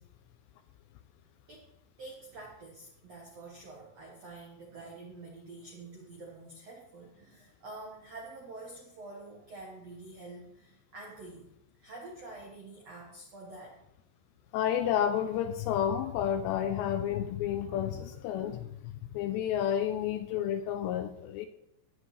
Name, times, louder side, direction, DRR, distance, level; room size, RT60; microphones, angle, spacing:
voice 1, 2.0-11.5 11.8-13.8, right 2 dB, 70° right, -2 dB, 1.5 m, -47 dB
voice 2, 14.5-21.5, left 10 dB, 85° left, 9 dB, 2.6 m, -31 dB
15.5 x 9.9 x 3.3 m, 0.79 s
omnidirectional pair, 5.4 m